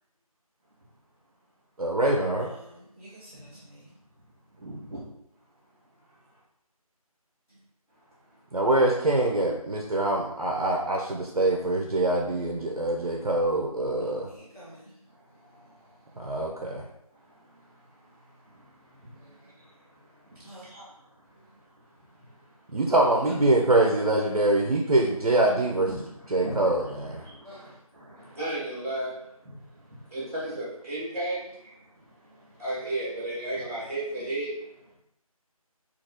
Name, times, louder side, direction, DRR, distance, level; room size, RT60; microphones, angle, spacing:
voice 1, 1.8-2.5 8.5-14.3 16.2-16.8 22.7-25.9 26.3-27.2, right 2 dB, 80° right, 0 dB, 0.5 m, -24 dB
voice 2, 2.6-3.8 14.3-14.8 20.4-20.7 27.4-27.7, right 1 dB, 5° left, -19 dB, 0.9 m, -48 dB
voice 3, 4.6-5.0 8.3-8.6 12.8-12.9 14.6-16.4 17.1-22.8 25.9-34.9, right 1 dB, 25° right, -9 dB, 1.4 m, -38 dB
3.1 x 2.4 x 2.7 m, 0.80 s
figure-of-eight pair, 165°, 19 cm